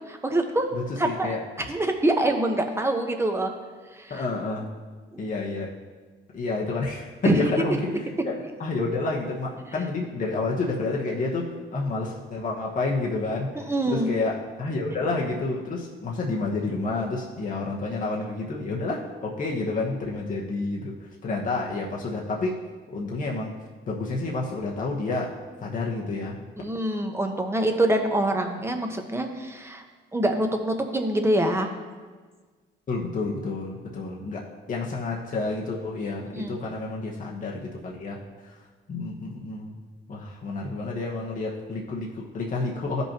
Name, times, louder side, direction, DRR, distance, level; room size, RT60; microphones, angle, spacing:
voice 1, 0.1-0.7 1.0-1.3 1.6-3.5 3.9-4.1 5.1-5.2 7.2-7.4 13.5-14.1 26.6-29.8 30.1-31.7 36.3-36.6, right 1 dB, 10° right, 4 dB, 1.0 m, -25 dB
voice 2, 0.7-1.7 4.1-4.7 5.2-5.7 6.3-22.5 22.9-23.6 23.9-25.4 25.6-26.4 32.9-38.6 38.9-39.8 40.1-43.0, left 3 dB, 40° left, -2 dB, 1.1 m, -29 dB
13.5 x 5.4 x 3.0 m, 1.4 s
cardioid pair, 90°, 20 cm